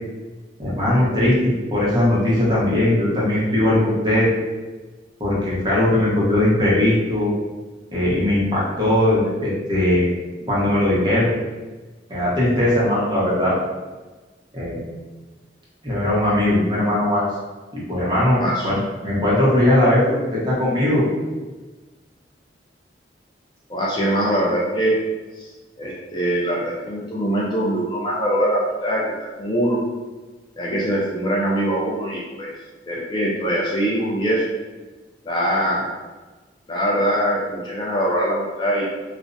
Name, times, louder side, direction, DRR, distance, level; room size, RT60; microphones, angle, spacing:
voice 1, 0.6-4.3 5.2-7.3 7.9-10.0 10.5-11.3 12.1-13.6 14.5-14.9 15.8-17.3 17.7-21.0, left 1 dB, 25° right, -7 dB, 0.8 m, -19 dB
voice 2, 18.3-18.7 23.7-25.0 25.3-25.5 25.8-29.0 29.4-29.8 30.6-32.5 32.9-34.5 35.2-35.9 36.7-38.8, equal, 25° left, -4 dB, 0.3 m, -22 dB
2.5 x 2.0 x 2.5 m, 1.3 s
head